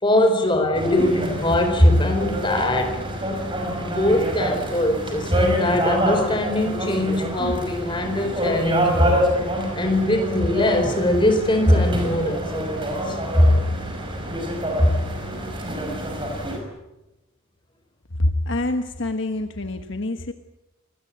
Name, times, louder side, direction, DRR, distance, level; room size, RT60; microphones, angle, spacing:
voice 1, 0.0-3.0 3.8-9.3 9.8-13.6 14.8-15.0, left 1 dB, 20° left, 5 dB, 4.3 m, -21 dB
sound 1, 0.7-16.6, equal, 25° right, 5.6 m, -26 dB
voice 2, 18.1-20.3, left 1 dB, 55° left, 6 dB, 1.3 m, -25 dB
26.0 x 20.0 x 8.6 m, 0.98 s
head